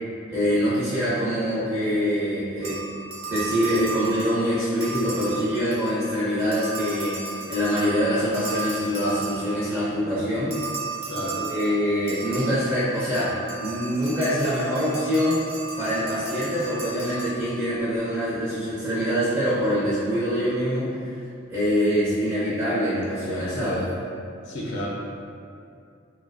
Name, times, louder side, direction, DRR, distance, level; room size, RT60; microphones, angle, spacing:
voice 1, 0.3-2.8 3.3-7.2 7.5-10.6 11.4-15.4 15.8-21.2 21.5-23.9, equal, 10° right, -12 dB, 0.5 m, -24 dB
sound 1, 2.6-6.1 6.4-9.8 10.5-17.8, right 3 dB, 70° right, 0.5 m, -35 dB
voice 2, 11.1-11.4 24.5-24.9, equal, 60° left, -5 dB, 0.5 m, -31 dB
2.3 x 2.1 x 2.5 m, 2.4 s
head